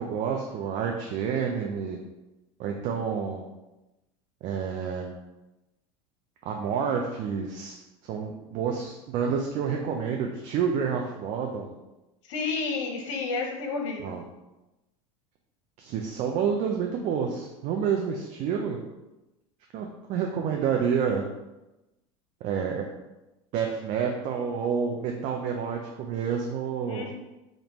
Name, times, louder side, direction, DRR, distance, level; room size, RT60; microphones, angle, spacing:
voice 1, 0.0-2.0 2.6-3.4 4.4-5.1 6.4-11.7 14.0-14.2 15.8-18.8 19.7-21.3 22.4-22.9 23.5-27.1, right 6 dB, 50° right, 1 dB, 0.5 m, -29 dB
voice 2, 12.2-14.2 26.9-27.1, left 4 dB, 80° left, 1 dB, 1.0 m, -31 dB
5.2 x 2.6 x 3.0 m, 0.98 s
supercardioid pair, 115°, 16 cm